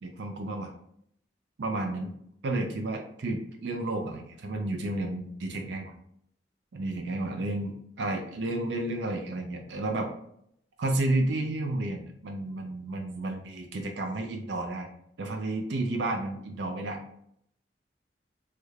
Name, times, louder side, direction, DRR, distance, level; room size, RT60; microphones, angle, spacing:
voice 1, 0.0-0.7 1.6-2.1 2.4-5.9 6.7-10.1 10.8-14.9 15.2-17.0, right 2 dB, 70° right, 3 dB, 0.4 m, -31 dB
3.2 x 2.4 x 3.2 m, 0.71 s
head